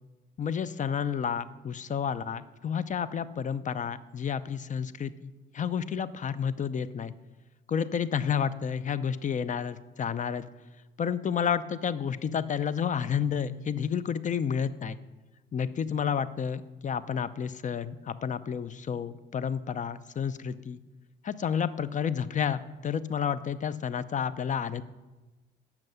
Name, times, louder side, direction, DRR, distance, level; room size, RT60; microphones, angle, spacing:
voice 1, 0.4-7.1 7.7-10.4 11.0-15.0 15.5-20.8 21.2-24.8, left 7 dB, 40° left, 16 dB, 0.5 m, -30 dB
7.7 x 5.9 x 7.8 m, 1.2 s
cardioid pair, 90°, 20 cm